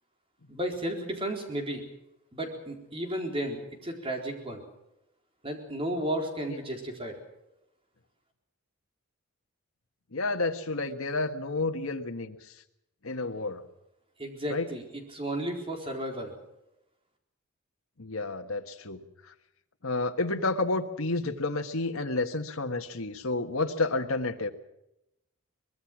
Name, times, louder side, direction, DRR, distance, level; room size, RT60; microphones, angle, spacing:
voice 1, 0.5-1.8 2.3-4.6 5.4-7.2 14.2-16.4, right 1 dB, 25° right, 3 dB, 4.1 m, -33 dB
voice 2, 10.1-12.4 13.0-13.6 14.5-14.7 18.0-19.0 19.8-24.5, left 3 dB, 85° left, 5 dB, 1.6 m, -30 dB
24.0 x 21.0 x 6.2 m, 0.88 s
head